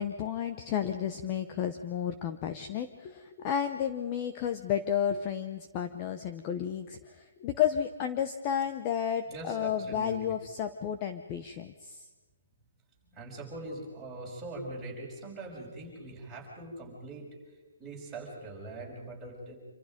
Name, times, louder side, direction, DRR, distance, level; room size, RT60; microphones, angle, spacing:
voice 1, 0.0-12.1, left 9 dB, 20° left, 8 dB, 0.8 m, -32 dB
voice 2, 9.3-10.2 13.0-17.3 17.8-19.6, right 2 dB, 5° right, -7 dB, 6.0 m, -42 dB
27.5 x 26.0 x 5.2 m, 1.2 s
hypercardioid pair, 175°, 0 cm